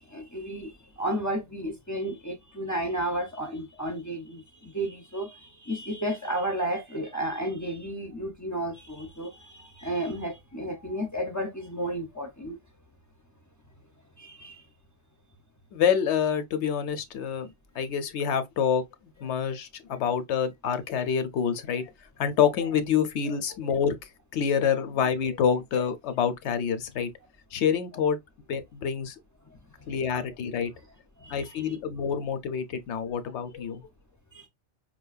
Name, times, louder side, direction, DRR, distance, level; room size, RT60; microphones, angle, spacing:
voice 1, 0.0-12.6 14.2-14.6 29.5-29.6 31.2-31.8 34.3-34.5, right 1 dB, 25° left, 0.3 m, -33 dB
voice 2, 15.7-18.8 19.2-21.9 22.2-24.0 24.3-27.1 27.5-28.2 28.5-29.1 29.9-30.7 31.3-33.8, left 7 dB, 80° left, 0.9 m, -27 dB
5.1 x 2.2 x 2.3 m
omnidirectional pair, 1.2 m